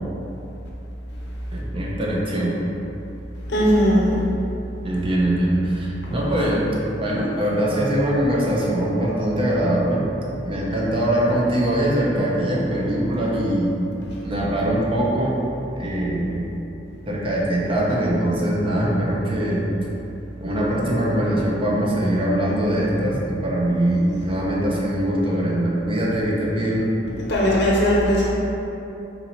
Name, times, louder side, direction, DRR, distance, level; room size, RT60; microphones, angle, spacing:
voice 1, 1.5-2.5 4.8-6.7 7.0-10.0 10.4-13.7 14.2-15.4 15.8-16.5 17.1-19.7 20.4-26.9, right 1 dB, 30° right, -5 dB, 0.7 m, -22 dB
voice 2, 3.5-4.2 27.3-28.3, equal, 65° left, -6 dB, 1.0 m, -18 dB
4.3 x 2.7 x 4.0 m, 2.9 s
head